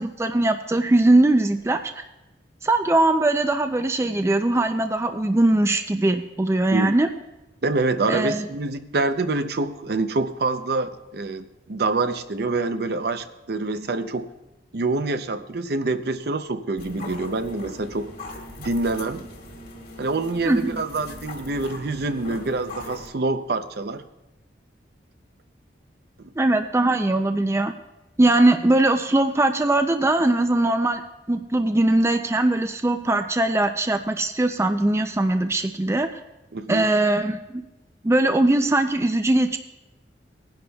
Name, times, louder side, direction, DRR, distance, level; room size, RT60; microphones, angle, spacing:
voice 1, 0.0-2.0 2.6-7.1 8.1-8.5 20.5-20.8 26.4-27.7 28.2-31.0 31.3-36.1 36.7-37.6 38.0-39.6, right 2 dB, 15° right, 7 dB, 0.4 m, -21 dB
voice 2, 7.6-14.3 14.7-18.1 18.6-19.3 20.0-24.0 36.5-36.9, right 3 dB, 60° right, 10 dB, 0.6 m, -26 dB
sound 1, 16.8-23.1, left 2 dB, 55° left, 1.9 m, -40 dB
20.0 x 10.5 x 2.3 m, 0.97 s
head